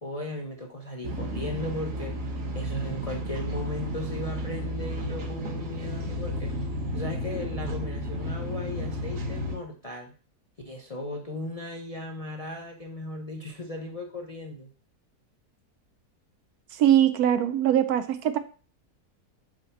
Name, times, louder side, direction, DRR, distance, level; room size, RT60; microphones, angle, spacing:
voice 1, 0.0-6.5 6.9-10.1 10.6-14.7, left 1 dB, 35° left, 1 dB, 0.6 m, -36 dB
sound 1, 1.0-9.6, equal, 55° right, 1.4 m, -32 dB
voice 2, 16.7-18.4, right 11 dB, 75° right, 11 dB, 1.1 m, -22 dB
6.3 x 2.9 x 5.8 m, 0.37 s
omnidirectional pair, 1.7 m